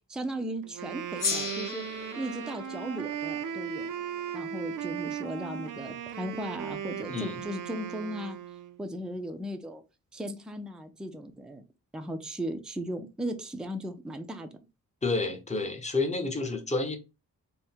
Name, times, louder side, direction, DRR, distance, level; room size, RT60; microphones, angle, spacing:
voice 1, 0.1-1.9 2.2-3.9 4.3-8.4 8.8-9.8 10.1-11.6 11.9-14.5, right 1 dB, ahead, 0.4 m, -37 dB
Wind instrument woodwind instrument, 0.6-8.8, right 8 dB, 70° right, 0.5 m, -37 dB
Gong, 1.2-5.9, left 5 dB, 70° left, 0.8 m, -38 dB
voice 2, 7.1-7.4 15.0-17.0, left 3 dB, 20° left, 0.8 m, -30 dB
3.5 x 2.2 x 4.2 m
wide cardioid pair, 135°, 33 cm